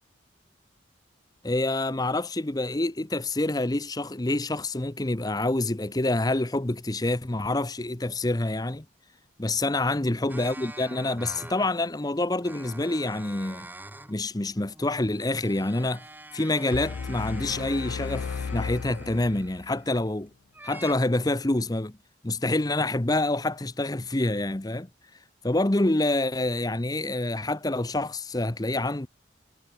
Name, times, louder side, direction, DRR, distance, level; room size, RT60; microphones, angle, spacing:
voice 1, 1.4-8.8 9.4-13.7 14.1-16.0 16.3-20.3 20.6-21.9 22.2-24.9 25.4-29.1, left 2 dB, 20° left, 0.8 m, -27 dB
sound 1, 10.3-11.9 12.4-14.2 14.6-20.1 20.5-20.9, right 2 dB, 10° right, 6.2 m, -46 dB
sound 2, 16.7-19.8, left 5 dB, 90° left, 0.4 m, -34 dB
head